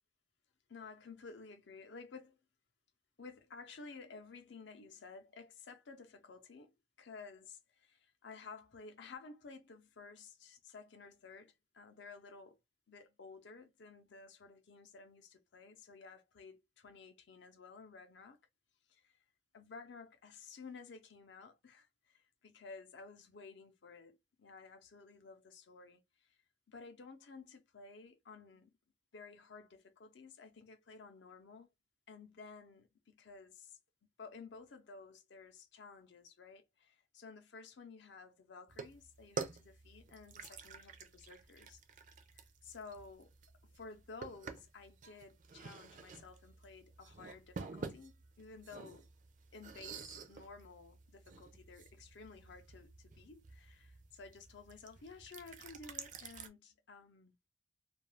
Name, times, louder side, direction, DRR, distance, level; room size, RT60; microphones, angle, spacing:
voice 1, 0.7-2.4 3.2-12.6 12.9-18.4 18.9-19.2 19.5-26.3 26.7-28.7 29.1-31.7 32.1-33.8 34.2-41.8 42.3-43.3 43.6-49.1 49.5-57.4, left 4 dB, 60° left, 0.6 m, -54 dB
sound 1, 38.7-56.5, right 5 dB, 40° right, 0.4 m, -50 dB
2.3 x 2.3 x 3.2 m
head